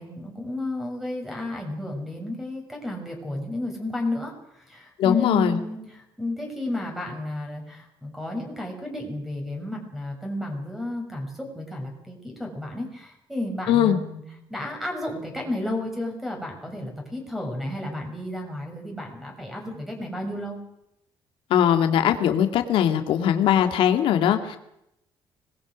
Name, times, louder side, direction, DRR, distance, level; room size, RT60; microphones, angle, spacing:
voice 1, 0.0-14.2 14.5-20.6, left 1 dB, ahead, 2 dB, 6.5 m, -32 dB
voice 2, 5.0-5.6 13.7-14.0 21.5-24.6, left 10 dB, 80° left, 6 dB, 2.3 m, -20 dB
25.5 x 20.5 x 6.4 m, 0.80 s
cardioid pair, 155°, 9 cm